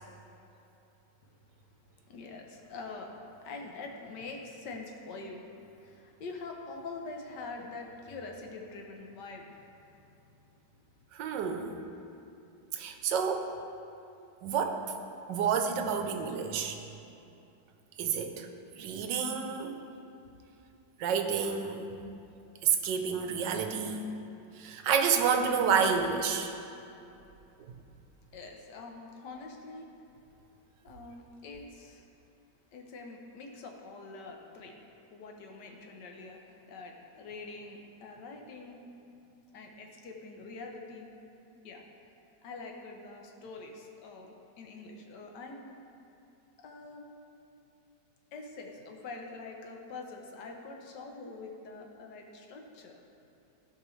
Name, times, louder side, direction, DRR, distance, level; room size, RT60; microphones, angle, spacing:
voice 1, 1.2-1.6 1.9-9.7 28.3-29.9 30.8-32.1 32.7-34.7 35.1-38.9 39.5-41.1 41.6-41.8 42.4-45.7 46.6-47.1 48.3-53.0, left 3 dB, 75° left, 2 dB, 1.5 m, -45 dB
voice 2, 11.1-11.7 12.7-13.5 14.4-14.8 15.3-16.8 18.0-18.5 18.8-19.8 21.0-22.0 22.6-24.0 24.6-26.5, right 6 dB, 80° right, 6 dB, 1.3 m, -29 dB
15.0 x 5.1 x 3.2 m, 2.8 s
omnidirectional pair, 1.9 m